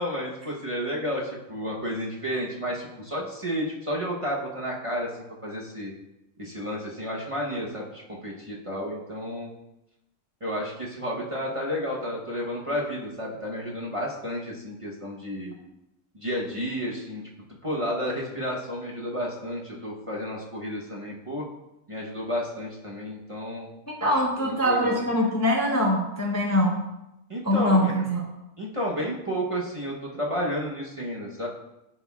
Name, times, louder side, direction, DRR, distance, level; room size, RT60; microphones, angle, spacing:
voice 1, 0.0-5.1 5.4-5.9 6.4-9.5 10.4-15.6 16.1-17.2 17.6-21.4 21.9-23.7 24.0-24.1 24.4-25.0 27.3-27.9 28.6-31.5, equal, 30° right, -4 dB, 0.9 m, -31 dB
voice 2, 23.9-26.8 27.4-28.3, equal, 15° left, -2 dB, 0.6 m, -23 dB
10.5 x 4.4 x 2.3 m, 0.90 s
omnidirectional pair, 1.4 m